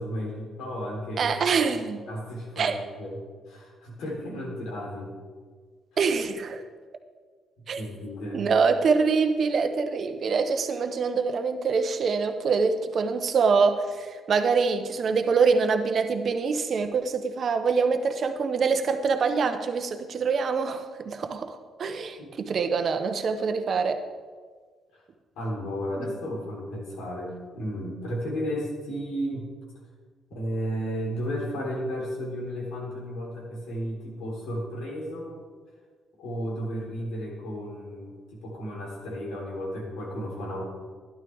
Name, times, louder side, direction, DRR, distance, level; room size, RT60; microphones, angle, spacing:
voice 1, 0.0-1.3 2.1-3.2 3.5-5.1 7.7-8.5 22.2-22.3 24.9-25.0 25.4-29.5 30.3-35.4 36.2-40.6, equal, 85° left, -2 dB, 3.7 m, -33 dB
voice 2, 1.2-2.0 2.6-2.8 6.0-6.6 7.7-7.8 8.3-24.0 26.0-26.2, right 5 dB, 55° right, 7 dB, 1.0 m, -25 dB
12.0 x 11.0 x 3.6 m, 1.6 s
cardioid pair, 90°, 0 cm